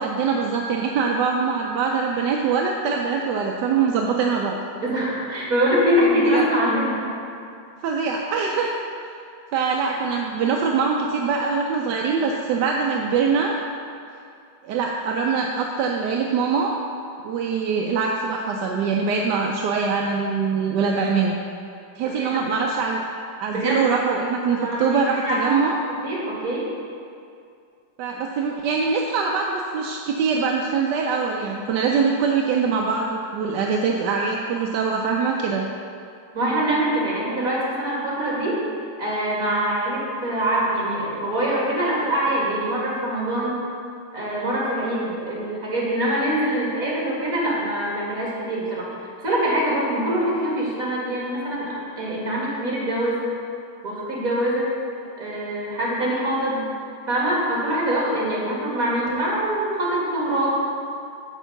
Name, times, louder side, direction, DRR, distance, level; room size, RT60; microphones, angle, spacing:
voice 1, 0.0-4.6 6.2-6.5 7.8-8.8 9.5-13.6 14.6-16.7 17.2-21.4 22.0-23.0 23.4-25.8 28.0-35.7, right 5 dB, 70° right, 0 dB, 1.1 m, -23 dB
voice 2, 4.7-7.0 22.2-22.5 23.5-23.8 24.6-25.7 26.0-26.7 36.3-38.6 39.0-43.6 44.1-53.2 53.8-54.7 55.2-56.6 57.1-60.5, right 1 dB, 45° right, -5 dB, 2.7 m, -24 dB
10.5 x 4.6 x 7.0 m, 2.4 s
omnidirectional pair, 2.1 m